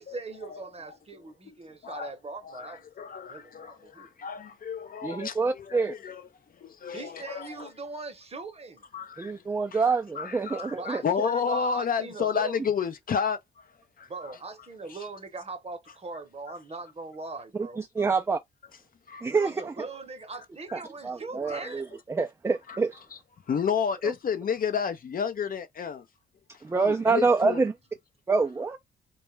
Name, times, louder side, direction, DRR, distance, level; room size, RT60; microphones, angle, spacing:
voice 1, 0.0-2.8 3.3-4.1 6.9-8.8 10.8-12.6 14.1-17.8 19.3-21.8 27.1-27.2, right 3 dB, 30° right, 0.9 m, -40 dB
voice 2, 2.4-6.2 6.6-7.7 8.9-9.3 9.7-9.8 10.2-13.4 14.0-14.1 19.1-19.3 21.5-21.7 22.7-22.8 23.5-26.0 26.7-27.6, left 7 dB, 45° left, 0.5 m, -31 dB
voice 3, 5.0-5.9 9.2-11.0 17.5-18.4 19.2-19.7 20.7-23.0 24.0-24.1 26.6-27.7 28.3-28.8, right 4 dB, 15° right, 0.4 m, -27 dB
2.3 x 2.1 x 3.0 m
supercardioid pair, 70°, 21 cm